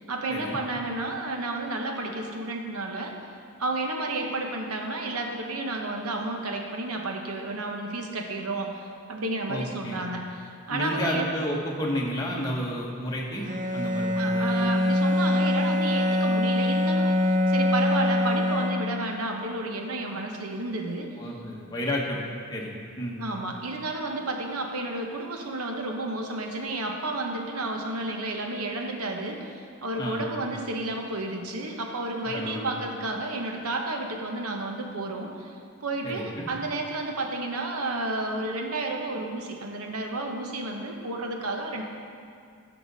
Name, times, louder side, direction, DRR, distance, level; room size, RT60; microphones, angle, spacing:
voice 1, 0.1-3.2 3.6-11.3 14.1-21.1 23.2-41.8, right 2 dB, 80° right, 2 dB, 1.0 m, -31 dB
voice 2, 9.5-10.0 10.7-13.5 13.7-14.7 21.2-22.2 22.5-22.7 23.0-23.2 30.0-30.2 32.2-32.6 36.0-36.5, equal, 15° left, -3 dB, 1.1 m, -31 dB
Bowed string instrument, 13.4-19.2, left 1 dB, 35° right, 0.6 m, -24 dB
12.0 x 6.0 x 4.1 m, 2.3 s
head